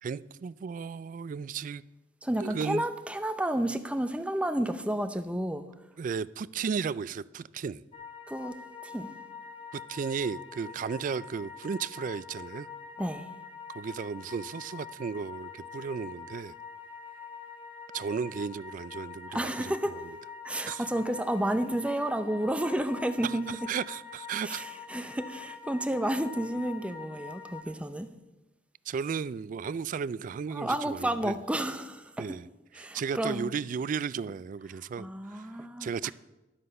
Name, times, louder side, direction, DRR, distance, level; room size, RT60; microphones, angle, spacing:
voice 1, 0.0-1.8 2.4-2.8 6.0-7.8 9.7-12.7 13.7-16.5 17.9-20.0 20.7-20.8 23.2-24.6 28.9-31.3 32.2-32.5 32.8-35.5 35.8-36.1, right 6 dB, 45° right, 0.3 m, -34 dB
voice 2, 2.2-5.6 8.3-8.6 8.8-9.1 13.0-13.3 19.3-19.9 20.4-23.4 24.4-28.1 30.5-32.3 32.7-33.5 35.0-36.1, right 1 dB, 5° right, 0.6 m, -31 dB
sound 1, 7.9-27.6, left 6 dB, 35° left, 0.9 m, -45 dB
11.5 x 7.8 x 5.4 m
head